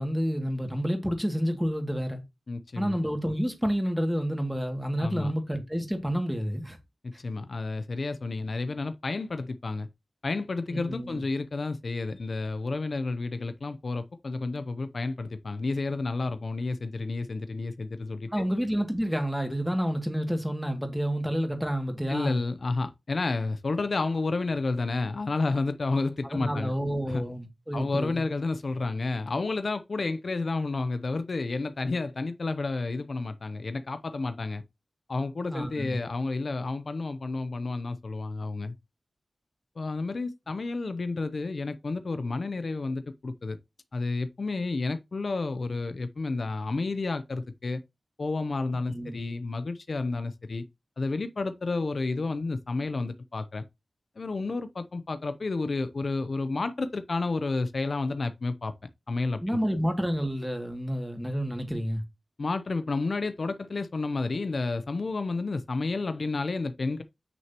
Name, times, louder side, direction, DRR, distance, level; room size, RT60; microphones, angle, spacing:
voice 1, 0.0-2.2 2.8-6.8 10.7-11.2 18.3-22.4 26.2-28.2 35.5-36.0 48.9-49.2 59.4-62.0, equal, 5° right, 2.3 m, -29 dB
voice 2, 2.5-3.0 5.0-5.3 7.0-9.9 10.2-18.4 22.1-26.7 27.1-27.2 27.7-34.6 35.1-38.7 39.8-43.6 43.9-47.8 48.2-50.6 51.0-53.6 54.2-58.7 59.1-59.6 62.4-67.0, left 3 dB, 60° left, 0.7 m, -31 dB
9.1 x 6.3 x 2.9 m
wide cardioid pair, 80°, 0 cm